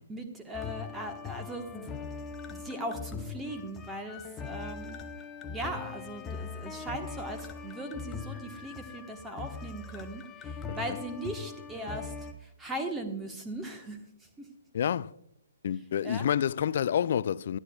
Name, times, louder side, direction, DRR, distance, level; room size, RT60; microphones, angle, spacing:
voice 1, 0.0-1.9 2.5-5.0 5.5-12.1 12.4-14.0 14.4-14.5 16.0-16.2, right 1 dB, 10° right, 1.2 m, -39 dB
sound 1, 0.5-12.3, left 5 dB, 15° left, 0.8 m, -41 dB
voice 2, 14.7-15.1 15.6-17.6, left 9 dB, 50° left, 0.4 m, -28 dB
21.0 x 11.5 x 2.3 m
figure-of-eight pair, 130°, 0 cm